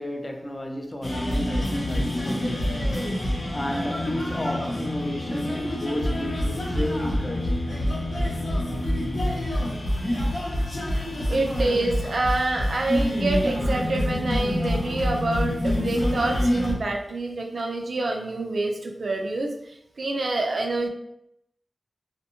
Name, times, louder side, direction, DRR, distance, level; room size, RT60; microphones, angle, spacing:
voice 1, 0.0-3.0 3.2-7.6, equal, 30° left, 0.4 m, -32 dB
sound 1, 1.0-16.7, left 1 dB, 70° left, 0.7 m, -26 dB
voice 2, 11.3-20.9, right 2 dB, 75° right, 0.4 m, -27 dB
2.5 x 2.1 x 2.8 m
wide cardioid pair, 80°, 0 cm